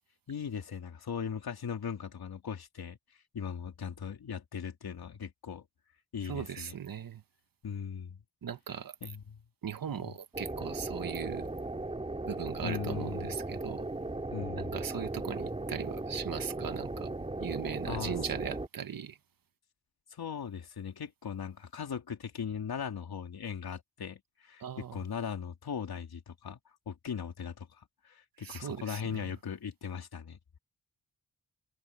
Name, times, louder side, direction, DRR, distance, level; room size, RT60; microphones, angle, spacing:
voice 1, 0.3-5.6 6.1-6.8 7.6-8.2 9.0-9.4 10.0-10.1 12.6-13.3 14.3-14.8 17.9-18.1 20.1-30.4, left 7 dB, 85° left, 3.0 m, -39 dB
voice 2, 6.2-7.2 8.4-9.0 9.6-11.5 12.2-13.9 14.6-17.1 17.4-19.2 24.6-25.0 28.4-29.3, right 8 dB, 65° right, 1.4 m, -39 dB
sound 1, 10.3-18.7, right 2 dB, 15° right, 2.5 m, -37 dB
wide cardioid pair, 160°, 36 cm